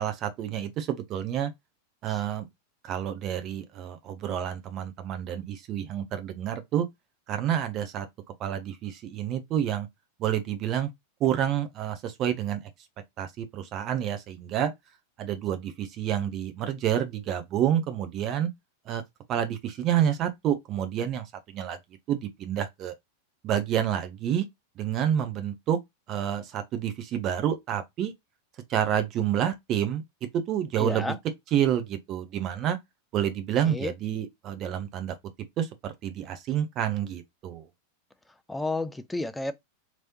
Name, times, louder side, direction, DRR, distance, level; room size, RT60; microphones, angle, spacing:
voice 1, 0.0-1.5 2.0-2.5 2.8-6.9 7.3-8.1 8.4-9.9 10.2-10.9 11.2-12.7 13.2-14.7 15.2-18.5 18.9-19.0 19.3-21.8 22.1-22.9 23.4-24.5 24.8-25.8 26.1-28.1 28.7-30.0 30.3-31.2 31.5-32.8 33.1-35.1 35.6-37.7, right 10 dB, 35° right, 0.7 m, -28 dB
voice 2, 30.8-31.2 33.7-33.9 38.5-39.5, left 2 dB, 5° left, 0.4 m, -30 dB
3.1 x 3.0 x 2.7 m
figure-of-eight pair, 90°, 0 cm